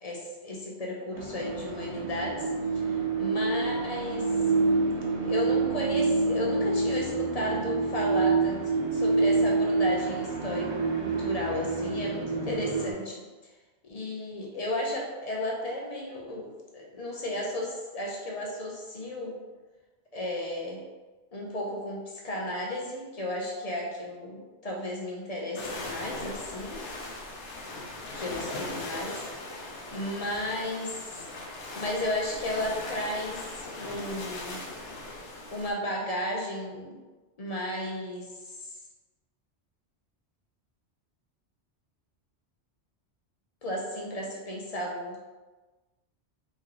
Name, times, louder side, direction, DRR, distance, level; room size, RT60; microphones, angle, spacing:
voice 1, 0.0-4.3 5.2-8.6 8.9-13.5 13.8-19.3 20.1-20.8 21.3-26.8 28.1-29.2 29.9-31.1 31.7-34.6 35.5-37.0 37.4-38.7 43.6-45.2, left 1 dB, 40° left, -2 dB, 0.7 m, -34 dB
sound 1, 1.2-12.9, right 3 dB, 80° right, 1.0 m, -27 dB
sound 2, 25.6-35.7, left 2 dB, 90° left, 0.9 m, -39 dB
3.2 x 3.0 x 3.6 m, 1.2 s
omnidirectional pair, 1.1 m